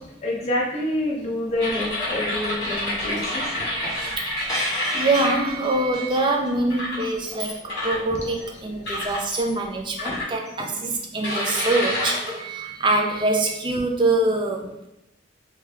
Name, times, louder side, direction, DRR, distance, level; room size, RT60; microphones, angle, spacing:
voice 1, 0.2-3.5 8.9-9.1, left 1 dB, 35° left, -4 dB, 0.6 m, -27 dB
sound 1, 1.5-9.8 10.0-10.2, equal, ahead, 1.1 m, -36 dB
sound 2, 1.6-6.2 6.7-7.1 7.7-8.4 8.9-9.2 10.0-10.7 11.2-13.5, left 1 dB, 60° left, 1.3 m, -29 dB
voice 2, 4.9-7.5 7.8-14.7, right 2 dB, 25° right, 1 dB, 0.4 m, -24 dB
3.0 x 2.3 x 3.2 m, 0.86 s
head